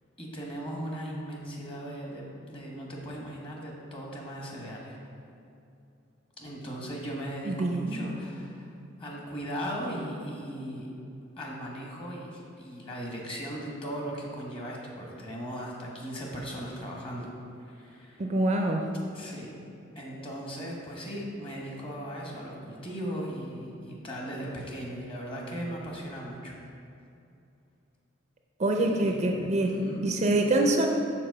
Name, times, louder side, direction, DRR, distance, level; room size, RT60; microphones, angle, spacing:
voice 1, 0.2-5.0 6.4-8.7 9.0-10.9 11.4-17.3 17.6-18.3 19.1-19.5 19.9-26.5 28.7-29.3 29.6-30.1, equal, 30° left, -2 dB, 1.2 m, -38 dB
voice 2, 7.5-8.1 18.2-18.9 28.6-30.9, right 2 dB, 35° right, 3 dB, 0.5 m, -25 dB
6.0 x 4.3 x 6.4 m, 2.6 s
head